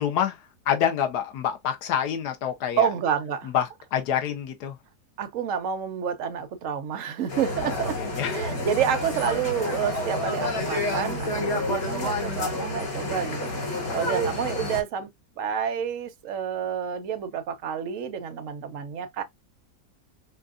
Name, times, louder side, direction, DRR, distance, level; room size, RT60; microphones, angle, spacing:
voice 1, 0.0-2.9 3.4-4.8 7.6-8.6 13.1-13.2 13.8-14.2, left 9 dB, 80° left, 1.4 m, -28 dB
voice 2, 2.8-3.5 5.2-13.4 13.9-15.1 15.4-19.2, right 8 dB, 65° right, 0.9 m, -29 dB
sound 1, 7.3-14.8, left 1 dB, 65° left, 2.0 m, -29 dB
5.2 x 2.5 x 2.4 m
omnidirectional pair, 1.7 m